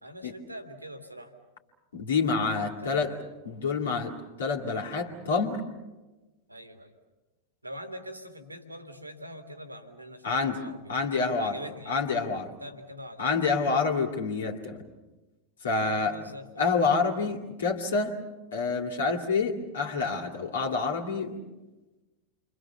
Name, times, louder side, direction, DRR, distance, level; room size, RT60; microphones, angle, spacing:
voice 1, 0.0-1.3 2.6-3.3 6.5-6.9 7.6-11.1 11.3-11.9 12.6-13.7 15.8-16.7 17.1-17.4, equal, 85° right, 7 dB, 2.2 m, -44 dB
voice 2, 1.9-3.1 3.4-5.6 10.2-10.6 10.9-11.6 11.9-12.5 13.2-14.8 15.6-16.2 16.6-18.2 18.5-21.4, left 4 dB, 65° left, 1 dB, 2.4 m, -27 dB
29.0 x 24.0 x 6.9 m, 1.2 s
figure-of-eight pair, 90°, 0 cm